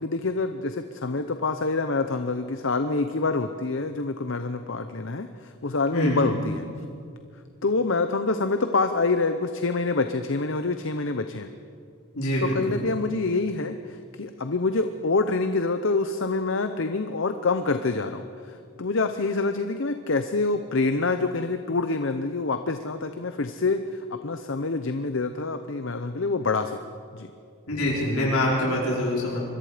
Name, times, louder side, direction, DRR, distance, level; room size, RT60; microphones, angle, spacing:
voice 1, 0.0-6.6 7.6-11.5 12.5-26.8 27.1-27.3, left 3 dB, 65° left, 8 dB, 0.8 m, -26 dB
voice 2, 5.9-6.3 12.1-12.8 27.7-29.4, left 1 dB, 90° left, -4 dB, 4.9 m, -25 dB
26.0 x 22.0 x 5.1 m, 2.3 s
head